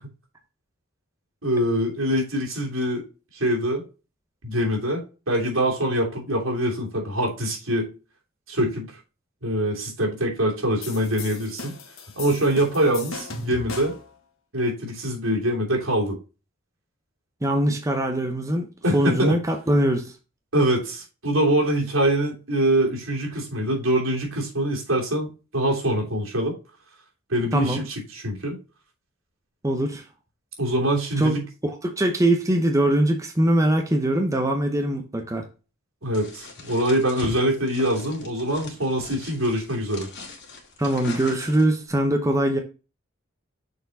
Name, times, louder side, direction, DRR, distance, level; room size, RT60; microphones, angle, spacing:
voice 1, 1.4-3.0 3.3-3.8 4.4-7.9 8.5-8.9 9.4-11.8 12.2-13.9 14.5-16.2 18.8-19.4 20.5-26.5 27.3-28.6 30.6-31.4 36.0-40.1, right 1 dB, 70° right, -1 dB, 2.9 m, -24 dB
sound 1, 10.8-14.1, left 3 dB, 80° left, 1.5 m, -37 dB
voice 2, 17.4-18.7 18.9-20.1 27.5-27.8 29.6-30.0 31.2-31.3 31.6-35.4 40.8-42.6, right 1 dB, 15° right, 4 dB, 0.8 m, -22 dB
sound 2, 36.1-41.8, left 3 dB, 60° left, 2.2 m, -41 dB
6.6 x 4.5 x 4.0 m, 0.32 s
head